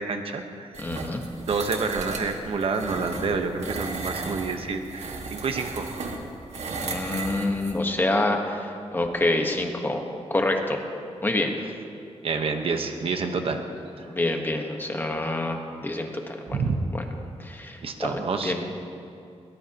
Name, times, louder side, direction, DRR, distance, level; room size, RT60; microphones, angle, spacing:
voice 1, 0.0-0.7 1.4-5.9 12.2-13.6 14.0-14.1 16.5-16.7 17.8-18.5, right 4 dB, 55° right, 5 dB, 1.1 m, -28 dB
sound 1, 0.7-7.8, right 3 dB, 80° right, 1.8 m, -35 dB
voice 2, 0.8-1.2 6.7-10.0 10.3-10.8 11.2-11.5 14.0-16.6 16.9-17.0 17.4-18.6, left 2 dB, 20° left, 3 dB, 1.3 m, -27 dB
22.0 x 18.5 x 3.0 m, 2.6 s
wide cardioid pair, 145°, 11 cm